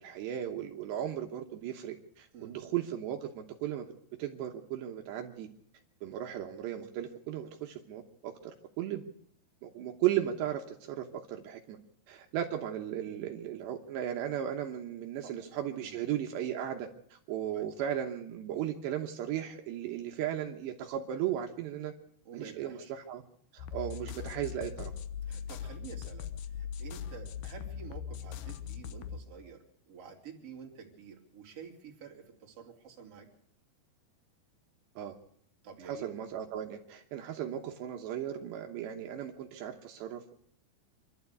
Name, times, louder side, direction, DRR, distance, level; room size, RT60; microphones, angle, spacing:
voice 1, 0.0-3.9 4.2-5.5 6.0-9.0 9.6-11.8 12.1-21.9 22.3-23.2 23.5-24.9 35.0-35.1 35.8-40.4, right 11 dB, 75° right, 3 dB, 3.2 m, -36 dB
voice 2, 22.2-22.9 25.2-33.3 35.6-36.1, right 6 dB, 35° right, 1 dB, 3.4 m, -49 dB
sound 1, 23.6-29.2, left 8 dB, 75° left, 2.0 m, -40 dB
26.0 x 12.0 x 8.2 m, 0.69 s
omnidirectional pair, 5.2 m